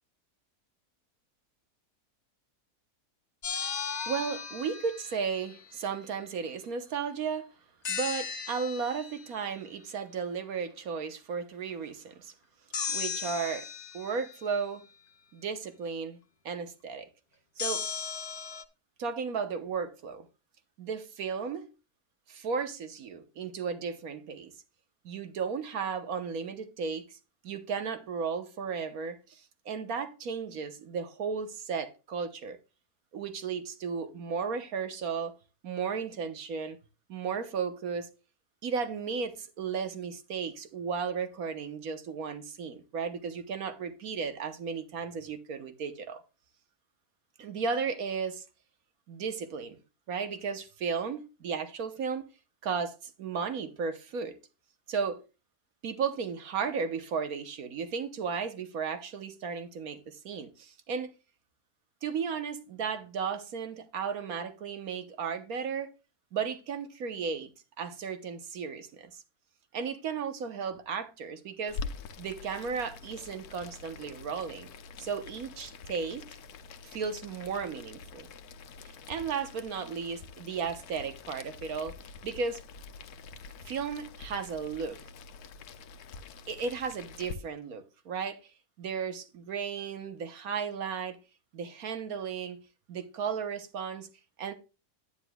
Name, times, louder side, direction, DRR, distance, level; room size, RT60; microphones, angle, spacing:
sound 1, 3.4-5.6 7.8-9.3 12.7-14.4 17.6-18.6, left 6 dB, 45° left, 0.6 m, -36 dB
voice 1, 4.1-7.5 7.9-12.3 12.9-13.7 13.9-14.8 15.3-16.2 16.4-17.1 17.6-17.9 19.0-20.3 20.8-21.7 22.3-24.5 25.0-27.2 27.4-32.6 33.1-35.3 35.6-36.8 37.1-38.1 38.6-46.2 47.4-48.4 49.1-49.8 50.1-52.2 52.6-54.4 54.9-55.2 55.8-61.1 62.0-65.9 66.3-67.5 67.8-69.2 69.7-71.8 72.2-74.7 75.0-76.2 76.8-78.3 78.8-81.9 82.2-82.6 83.7-85.0 86.5-88.5 88.8-91.2 91.5-92.6 92.9-94.1 94.4-94.5, right 6 dB, 70° right, 1.4 m, -34 dB
Boiling, 71.7-87.3, left 4 dB, 75° left, 1.2 m, -45 dB
10.0 x 9.7 x 2.3 m
omnidirectional pair, 1.6 m